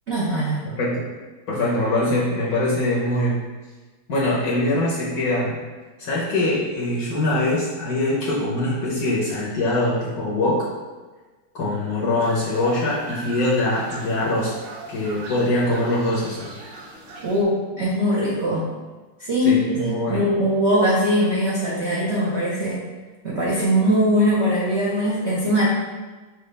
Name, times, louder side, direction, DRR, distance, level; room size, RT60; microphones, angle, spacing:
voice 1, 0.1-0.6 17.2-18.7 19.2-22.8 23.2-25.7, equal, 65° right, -7 dB, 0.7 m, -21 dB
voice 2, 0.7-1.1 1.5-3.4 4.1-5.6 6.0-10.7 11.5-14.5 14.9-16.5 19.4-20.3, left 1 dB, 60° left, -6 dB, 1.1 m, -23 dB
sound 1, 12.2-17.4, right 2 dB, 85° right, 1.7 m, -39 dB
6.2 x 2.4 x 3.2 m, 1.3 s
omnidirectional pair, 2.3 m